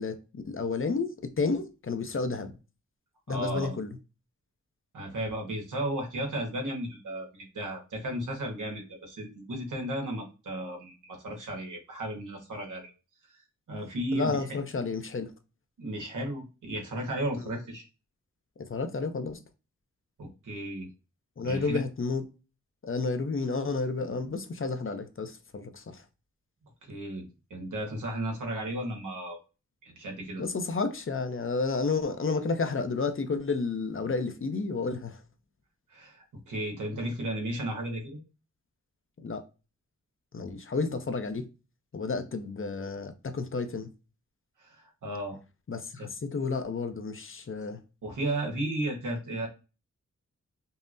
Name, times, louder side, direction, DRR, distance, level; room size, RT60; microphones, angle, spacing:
voice 1, 0.0-2.5 3.3-4.0 14.1-15.3 17.4-17.6 18.6-19.4 21.4-22.2 22.8-26.0 30.4-35.2 39.2-39.4 40.3-41.5 41.9-43.9 45.7-47.8, left 4 dB, 45° left, 0.7 m, -31 dB
voice 2, 3.3-3.8 4.9-12.9 13.7-14.4 15.8-17.8 20.2-20.9 21.4-21.8 26.9-29.4 29.8-30.4 35.9-38.2 44.6-45.4 46.0-46.1 48.0-49.5, right 1 dB, 90° right, 1.3 m, -34 dB
5.5 x 2.1 x 2.6 m
cardioid pair, 50°, 30 cm